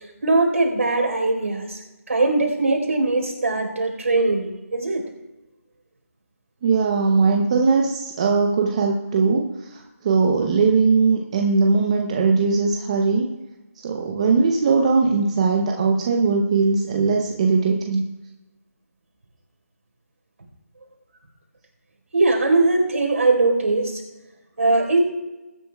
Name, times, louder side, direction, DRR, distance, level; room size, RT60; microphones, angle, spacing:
voice 1, 0.2-1.8 2.1-5.0 22.1-24.0 24.6-25.0, right 2 dB, 60° right, 2 dB, 4.1 m, -20 dB
voice 2, 6.6-13.3 13.8-18.0, right 4 dB, 25° right, 2 dB, 0.8 m, -20 dB
20.5 x 10.5 x 2.3 m, 1.1 s
figure-of-eight pair, 165°, 8 cm